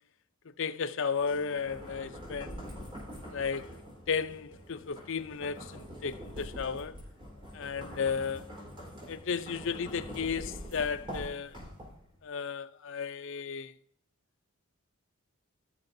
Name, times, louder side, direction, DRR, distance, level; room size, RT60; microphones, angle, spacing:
voice 1, 0.6-2.7 3.3-7.0 7.5-8.5 9.1-11.6 12.2-13.7, left 6 dB, 60° left, 0.5 m, -34 dB
sound 1, 1.2-12.2, equal, 25° right, 4.1 m, -45 dB
16.0 x 6.6 x 2.7 m
head